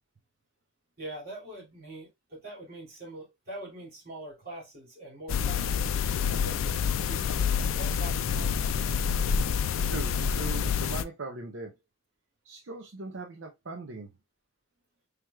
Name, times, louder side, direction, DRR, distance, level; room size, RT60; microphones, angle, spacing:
voice 1, 1.0-7.3 7.8-8.6, right 1 dB, 45° right, 2.2 m, -43 dB
sound 1, 5.3-11.0, left 7 dB, 75° left, 0.3 m, -28 dB
voice 2, 9.5-11.7 12.4-14.1, right 3 dB, 70° right, 0.6 m, -40 dB
4.6 x 3.4 x 2.2 m
head